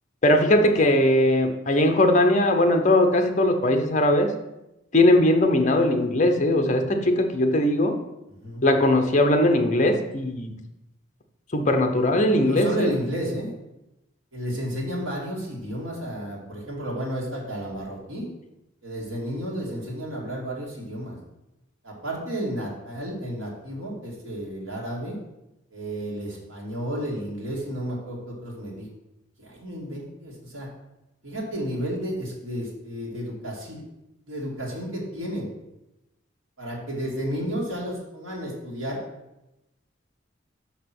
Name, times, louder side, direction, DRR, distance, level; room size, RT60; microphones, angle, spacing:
voice 1, 0.2-4.3 4.9-8.0 8.6-10.5 11.5-12.9, left 1 dB, 35° left, 5 dB, 0.8 m, -20 dB
voice 2, 12.4-13.5 14.3-18.3 18.8-21.2 21.8-25.2 25.7-28.9 29.4-30.7 31.2-33.8 34.3-35.5 36.6-39.0, equal, 75° right, -3 dB, 2.4 m, -32 dB
5.8 x 5.7 x 6.0 m, 0.93 s
head